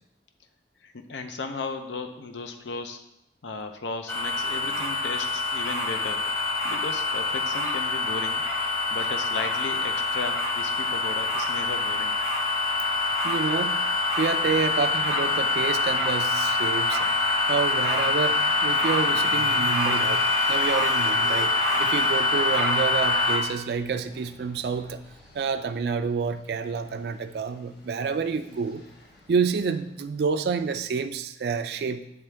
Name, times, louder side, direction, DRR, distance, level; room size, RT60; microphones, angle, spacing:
voice 1, 0.8-3.0 3.4-6.3 6.6-8.4 8.9-12.2, left 3 dB, 90° left, 7 dB, 0.6 m, -35 dB
sound 1, 4.1-23.4, left 2 dB, 15° left, 0.9 m, -25 dB
voice 2, 13.2-13.8 14.2-17.1 17.5-25.0 25.3-28.8 29.3-32.0, right 5 dB, 65° right, 8 dB, 0.3 m, -28 dB
sound 2, 19.1-30.2, equal, 75° left, 1.4 m, -43 dB
8.6 x 3.5 x 3.3 m, 0.82 s
head